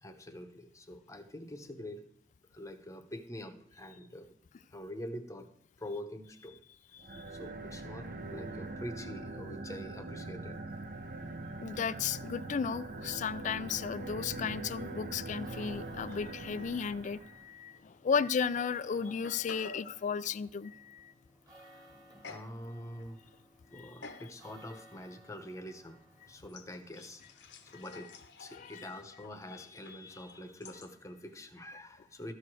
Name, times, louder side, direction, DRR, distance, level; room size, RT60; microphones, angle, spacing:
voice 1, 0.0-2.1 2.5-4.3 4.7-5.5 5.8-6.6 7.3-10.6 21.6-21.8 22.2-23.2 23.7-26.0 26.3-28.1 28.4-32.3, left 1 dB, 15° left, 8 dB, 0.9 m, -45 dB
sound 1, 7.0-17.5, right 2 dB, 55° right, 0.8 m, -43 dB
voice 2, 11.6-21.1 23.7-23.9 28.6-28.9, left 6 dB, 40° left, 17 dB, 0.3 m, -34 dB
sound 2, 15.2-28.7, right 1 dB, 20° right, 1.7 m, -60 dB
sound 3, 16.1-16.8 17.1-17.2 18.1-18.2 18.8-20.0 22.2-22.6 23.0-23.4 24.0-24.4 24.9-25.1 26.5-30.9, left 4 dB, 70° left, 0.9 m, -51 dB
13.5 x 4.8 x 6.1 m, 0.67 s
head